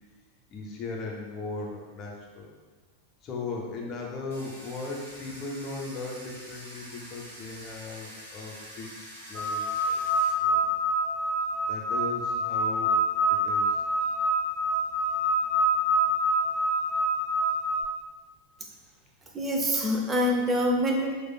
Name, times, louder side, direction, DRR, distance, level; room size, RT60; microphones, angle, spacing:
voice 1, 0.5-2.5 3.2-9.0 9.3-10.0 10.4-10.6 11.7-13.0 13.3-13.8, left 3 dB, 35° left, -1 dB, 0.7 m, -37 dB
Domestic sounds home sounds, 4.3-10.3, equal, 60° right, 1.1 m, -46 dB
sound 1, 9.3-17.8, right 1 dB, 5° left, 0.9 m, -26 dB
voice 2, 19.3-21.1, equal, 15° right, 0 dB, 0.6 m, -25 dB
6.1 x 2.4 x 2.3 m, 1.4 s
figure-of-eight pair, 90°, 0 cm